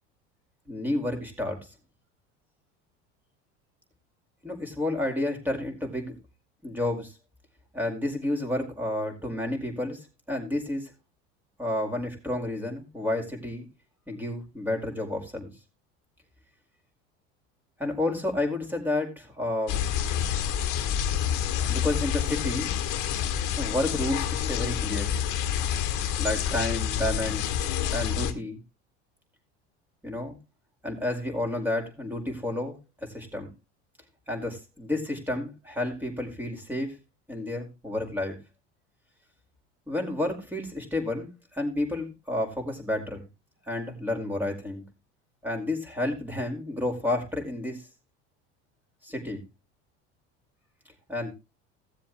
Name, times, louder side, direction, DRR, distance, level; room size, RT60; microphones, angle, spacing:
voice 1, 0.7-1.6 4.4-6.1 6.6-7.1 7.7-10.9 11.6-13.7 14.1-15.5 17.8-19.8 21.7-22.7 23.6-25.1 26.2-27.4 27.9-28.6 30.0-30.4 30.8-32.8 33.1-33.5 34.3-37.0 37.3-38.4 39.9-43.3 43.7-44.8 45.4-47.8 49.0-49.4 51.1-51.3, left 1 dB, 5° right, 2 dB, 4.8 m, -30 dB
sound 1, 19.7-28.3, left 9 dB, 60° left, 1.8 m, -28 dB
17.0 x 7.4 x 3.2 m, 0.26 s
hypercardioid pair, 85°, 35 cm